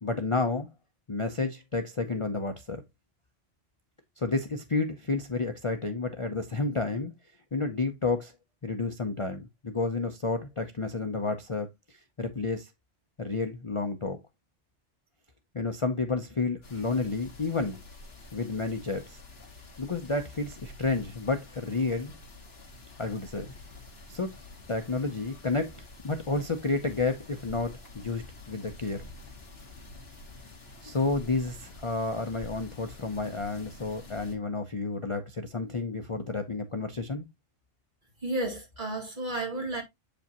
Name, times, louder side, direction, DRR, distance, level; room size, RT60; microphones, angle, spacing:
voice 1, 0.0-0.7 1.1-2.8 4.2-7.1 7.5-8.3 8.6-12.7 13.2-14.2 15.5-17.8 18.3-19.2 19.8-22.1 23.0-23.5 24.1-24.3 24.7-29.0 30.8-37.3, left 3 dB, 30° left, 0.6 m, -31 dB
sound 1, 16.6-34.4, left 2 dB, 55° left, 1.9 m, -48 dB
voice 2, 38.2-39.8, right 2 dB, 40° right, 2.6 m, -32 dB
8.1 x 5.1 x 2.9 m
omnidirectional pair, 1.3 m